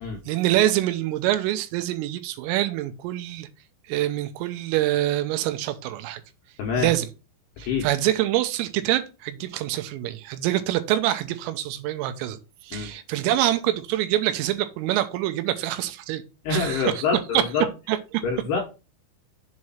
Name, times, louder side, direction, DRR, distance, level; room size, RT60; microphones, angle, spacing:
voice 1, 0.3-3.5 3.9-6.2 6.8-7.1 7.6-16.2 16.5-17.0 17.3-17.4 17.9-18.2, right 14 dB, 85° right, 3.2 m, -25 dB
voice 2, 6.6-6.9 7.6-7.9 12.7-12.9 16.4-17.7 18.2-18.6, left 5 dB, 75° left, 2.5 m, -26 dB
7.5 x 3.1 x 5.5 m
omnidirectional pair, 5.9 m